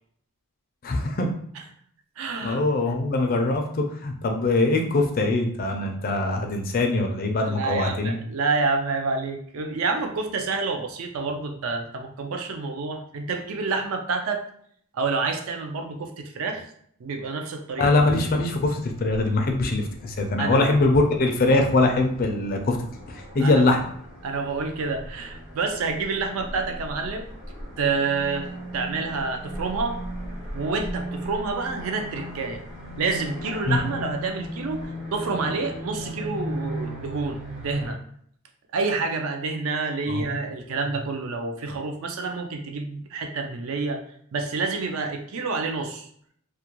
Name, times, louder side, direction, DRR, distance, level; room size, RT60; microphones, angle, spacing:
voice 1, 0.8-1.3 2.4-8.2 17.8-22.8 23.1-23.8 33.7-33.8 40.1-40.3, left 2 dB, 40° left, 3 dB, 0.4 m, -22 dB
voice 2, 2.2-2.6 7.4-14.4 14.9-16.7 17.0-17.9 20.4-20.7 23.4-23.7 24.2-27.3 27.8-28.5 28.7-30.0 30.5-32.6 33.0-34.8 35.1-38.0 38.7-44.0 44.3-46.1, right 4 dB, 65° right, 4 dB, 0.4 m, -28 dB
sound 1, 18.9-37.9, equal, 50° right, 0.8 m, -37 dB
2.3 x 2.2 x 2.9 m, 0.64 s
head